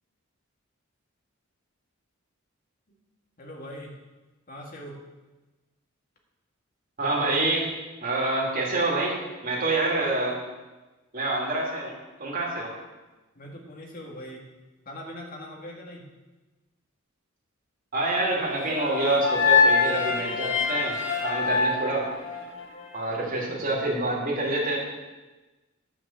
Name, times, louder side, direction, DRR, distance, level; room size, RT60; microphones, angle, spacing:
voice 1, 3.4-3.9 4.5-5.0 13.4-14.5 14.9-16.1, equal, 40° left, -1 dB, 2.0 m, -41 dB
voice 2, 7.0-7.7 8.0-10.4 11.1-11.9 12.2-12.7 17.9-22.1 22.9-24.8, right 2 dB, 40° right, -4 dB, 3.0 m, -27 dB
sound 1, 18.6-22.8, left 5 dB, 60° left, 1.6 m, -24 dB
9.8 x 6.1 x 7.5 m, 1.2 s
head